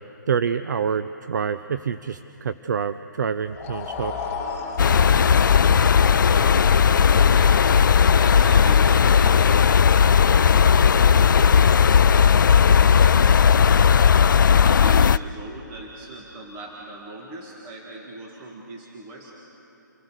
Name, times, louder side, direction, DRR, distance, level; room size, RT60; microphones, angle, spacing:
voice 1, 0.3-4.1, right 7 dB, 65° right, 12 dB, 0.6 m, -26 dB
sound 1, 3.4-9.7, left 5 dB, 20° left, 3.5 m, -36 dB
sound 2, 4.8-15.2, left 7 dB, 75° left, 0.4 m, -16 dB
voice 2, 6.2-6.6 7.3-7.7 8.0-10.7 11.1-11.8 12.7-13.4 14.3-19.3, right 1 dB, 25° right, -1 dB, 2.2 m, -39 dB
27.5 x 15.5 x 6.6 m, 2.9 s
hypercardioid pair, 145°, 11 cm